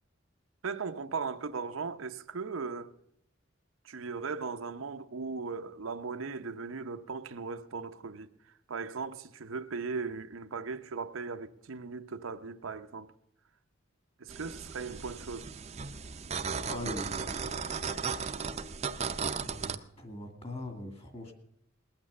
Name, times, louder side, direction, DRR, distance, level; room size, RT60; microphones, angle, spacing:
voice 1, 0.6-2.9 3.8-8.3 8.7-13.1 14.2-15.5, right 4 dB, 90° right, 0.7 m, -38 dB
sound 1, 14.3-19.8, right 5 dB, 30° right, 0.5 m, -36 dB
voice 2, 16.7-17.5 19.4-21.3, left 1 dB, 30° left, 2.2 m, -41 dB
20.0 x 8.8 x 6.9 m
head